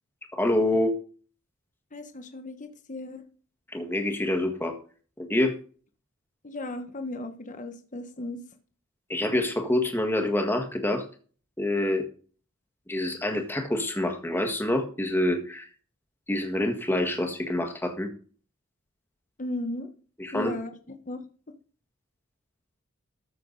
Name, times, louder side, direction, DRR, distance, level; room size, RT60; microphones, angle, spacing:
voice 1, 0.3-0.9 3.7-4.7 5.2-5.6 9.1-11.0 11.6-12.1 12.9-15.7 16.3-18.1 20.2-20.5, left 1 dB, 10° left, 1.6 m, -26 dB
voice 2, 1.9-3.2 6.4-8.4 19.4-19.9 20.3-20.7 21.1-21.2, left 2 dB, 40° left, 1.2 m, -35 dB
13.5 x 6.8 x 4.0 m
head